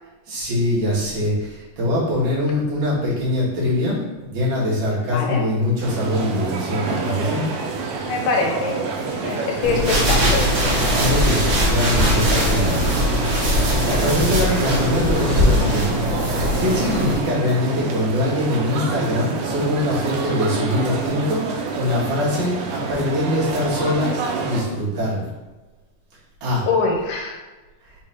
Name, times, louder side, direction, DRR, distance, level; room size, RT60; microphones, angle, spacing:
voice 1, 0.3-7.5 11.0-12.8 13.8-16.1 16.6-21.4 21.7-25.3 26.4-26.6, left 1 dB, 65° right, -8 dB, 3.5 m, -23 dB
voice 2, 5.1-5.4 8.0-8.8 9.2-10.5 13.7-14.0 26.6-27.4, left 4 dB, 85° left, 1 dB, 2.6 m, -23 dB
sound 1, 5.8-24.6, right 4 dB, 80° right, 2.4 m, -28 dB
sound 2, 9.6-17.1, equal, 45° right, 1.6 m, -20 dB
7.1 x 3.1 x 4.5 m, 1.2 s
omnidirectional pair, 3.9 m